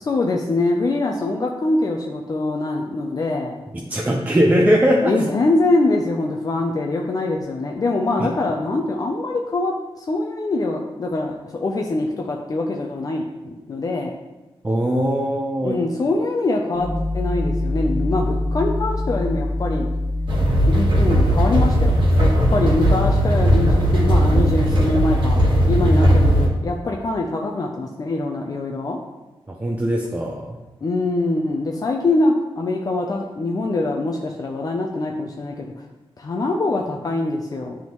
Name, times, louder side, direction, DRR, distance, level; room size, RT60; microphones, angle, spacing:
voice 1, 0.0-3.6 5.0-14.1 15.6-16.9 17.1-19.9 20.7-29.0 30.8-35.8 36.2-37.8, left 2 dB, 40° left, 1 dB, 0.5 m, -23 dB
voice 2, 3.9-5.2 14.6-15.8 29.6-30.6, equal, 15° right, -2 dB, 0.5 m, -20 dB
sound 1, 16.7-24.7, left 1 dB, 20° left, 1.0 m, -26 dB
sound 2, 20.3-26.5, equal, 55° right, 1.4 m, -17 dB
10.0 x 3.6 x 3.0 m, 1.1 s
wide cardioid pair, 160°, 10 cm